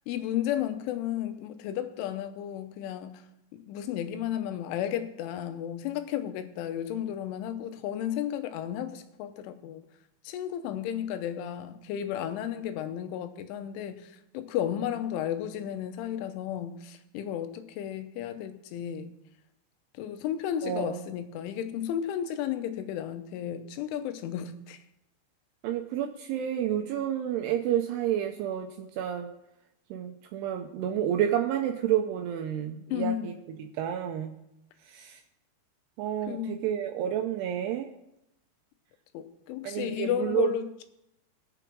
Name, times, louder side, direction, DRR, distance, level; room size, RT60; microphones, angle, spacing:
voice 1, 0.1-3.2 3.7-9.9 10.2-19.1 19.9-24.8 32.9-33.3 36.3-36.7 39.1-40.8, left 10 dB, 85° left, 3.3 m, -33 dB
voice 2, 20.6-21.0 25.6-29.3 29.9-33.3 33.6-34.3 34.8-35.2 36.0-37.9 39.6-40.6, right 10 dB, 80° right, 2.4 m, -30 dB
20.0 x 7.0 x 4.6 m
omnidirectional pair, 5.4 m